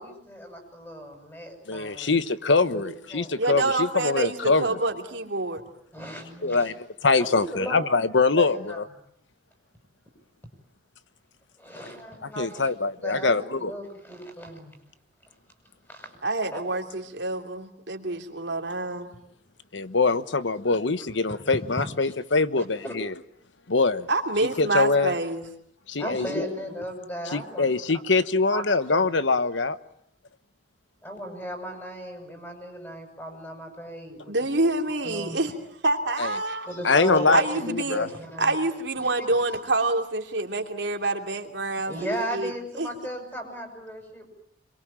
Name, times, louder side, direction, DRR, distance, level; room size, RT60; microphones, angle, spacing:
voice 1, 0.0-2.2 2.7-2.8 3.1-3.3 5.9-6.7 7.2-7.8 8.4-8.8 11.6-12.7 13.0-14.7 15.9-16.1 16.5-16.7 21.8-22.1 22.8-22.9 26.0-28.0 28.5-28.6 28.9-29.1 31.0-34.4 35.0-35.4 36.6-38.5 39.0-39.1 41.9-44.2, equal, 15° left, 7.6 m, -36 dB
voice 2, 1.7-4.8 6.4-8.8 12.2-13.7 19.7-23.1 23.7-24.1 24.6-25.1 25.9-26.3 27.3-29.8 36.2-36.3 36.8-38.1, left 3 dB, 85° left, 1.2 m, -23 dB
voice 3, 3.4-5.6 16.2-19.1 24.1-25.4 34.3-35.5 35.8-36.7 37.3-38.0 38.4-42.5 42.8-42.9, right 2 dB, 70° right, 3.2 m, -27 dB
26.5 x 23.0 x 8.9 m
head